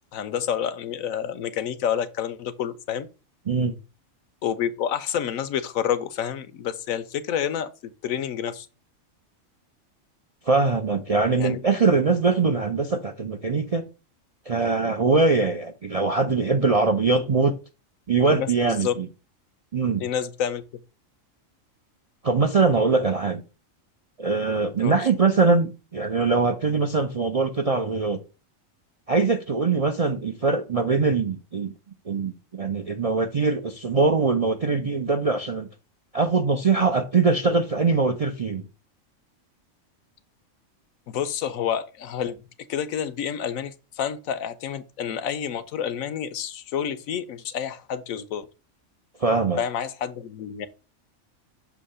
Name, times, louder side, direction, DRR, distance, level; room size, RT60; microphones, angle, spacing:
voice 1, 0.1-3.1 4.4-7.7 8.0-8.7 11.4-11.6 17.2-17.3 18.3-18.9 20.0-20.6 24.8-25.1 41.1-42.4 42.7-48.5 49.6-50.7, left 9 dB, 80° left, 1.1 m, -29 dB
voice 2, 10.5-13.8 14.5-17.5 18.1-19.1 19.7-20.0 22.2-23.4 24.2-28.2 29.1-31.7 32.1-35.7 36.1-38.7 49.2-49.6, right 4 dB, 50° right, 0.4 m, -22 dB
7.0 x 2.8 x 5.4 m
omnidirectional pair, 1.4 m